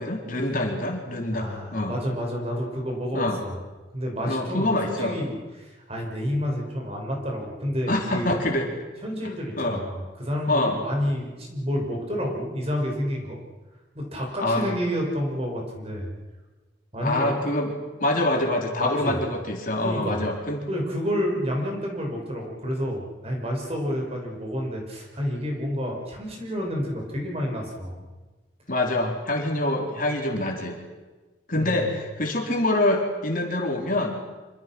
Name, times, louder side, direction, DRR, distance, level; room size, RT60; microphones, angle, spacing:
voice 1, 0.0-2.0 3.1-3.4 4.3-5.2 7.9-8.7 9.2-9.8 10.5-10.8 14.4-14.8 17.0-17.7 18.0-20.6 28.7-30.8 31.5-34.2, left 1 dB, 45° left, 1 dB, 4.0 m, -25 dB
voice 2, 1.3-3.6 3.9-8.4 9.0-13.4 13.9-16.1 16.9-17.4 18.8-19.2 19.8-20.2 20.7-28.0 31.6-31.9, equal, 30° right, 0 dB, 6.2 m, -29 dB
26.5 x 25.5 x 6.2 m, 1.2 s
head